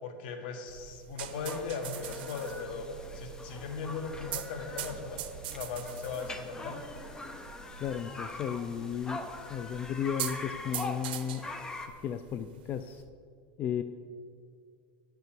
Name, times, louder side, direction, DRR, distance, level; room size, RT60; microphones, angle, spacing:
voice 1, 0.0-2.9 3.1-6.8, left 5 dB, 75° left, 5 dB, 1.7 m, -38 dB
sound 1, 0.7-13.1, right 11 dB, 85° right, 0.8 m, -44 dB
sound 2, 1.2-11.9, left 2 dB, 10° left, 0.8 m, -43 dB
voice 2, 7.8-9.2 9.5-11.4 12.0-13.0 13.6-13.8, left 8 dB, 35° left, 10 dB, 0.4 m, -34 dB
9.5 x 6.7 x 8.5 m, 2.3 s
supercardioid pair, 145°, 5 cm